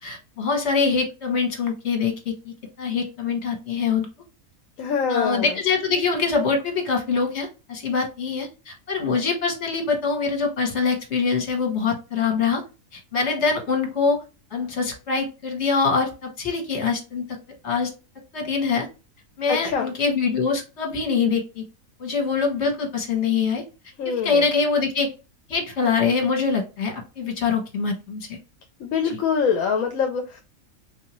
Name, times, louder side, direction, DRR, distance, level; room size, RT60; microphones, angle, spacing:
voice 1, 0.0-4.1 5.1-12.6 12.9-14.2 14.5-17.2 17.6-17.9 18.3-18.9 19.4-21.6 22.0-23.6 24.2-25.1 25.5-28.4 29.0-29.2, left 5 dB, 55° left, 1 dB, 1.4 m, -24 dB
voice 2, 4.8-5.6 19.5-19.9 24.0-24.5 28.8-30.4, left 6 dB, 75° left, 4 dB, 1.0 m, -24 dB
3.9 x 2.7 x 2.9 m, 0.30 s
omnidirectional pair, 1.5 m